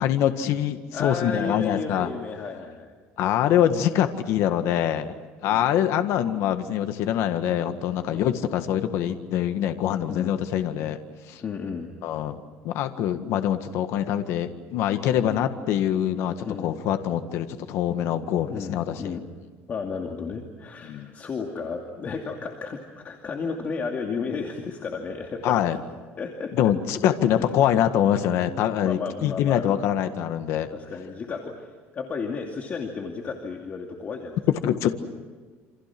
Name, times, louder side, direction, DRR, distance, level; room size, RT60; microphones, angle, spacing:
voice 1, 0.0-2.1 3.2-5.1 5.4-11.0 11.3-11.4 12.0-16.3 16.6-19.2 20.9-21.1 25.4-25.8 26.5-30.7 34.6-34.9, left 10 dB, 65° left, 8 dB, 1.8 m, -24 dB
voice 2, 0.9-3.0 5.4-5.6 8.1-8.3 10.0-10.3 11.4-11.9 16.4-16.7 18.5-19.2 19.7-25.6 26.2-26.5 27.2-27.5 28.8-29.8 30.7-34.4, left 5 dB, 30° left, 2 dB, 2.6 m, -33 dB
28.5 x 27.0 x 6.1 m, 1.4 s
cardioid pair, 150°, 5 cm